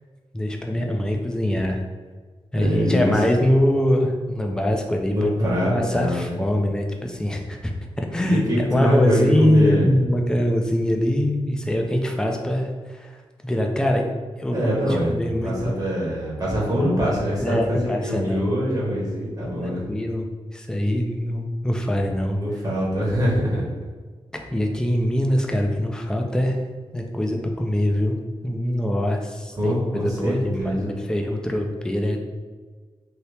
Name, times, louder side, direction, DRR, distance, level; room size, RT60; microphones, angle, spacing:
voice 1, 0.3-1.8 2.5-13.2 13.4-14.0 14.4-14.8 15.1-15.8 17.4-18.5 19.6-20.3 20.5-22.4 24.3-26.6 26.9-28.2 28.4-32.2, left 1 dB, 5° left, 2 dB, 0.4 m, -23 dB
voice 2, 2.5-3.2 5.1-6.4 8.2-9.9 14.5-15.2 15.4-19.9 22.3-23.7 29.6-31.0, equal, 35° right, -5 dB, 1.0 m, -24 dB
2.8 x 2.8 x 3.3 m, 1.4 s
wide cardioid pair, 95°, 11 cm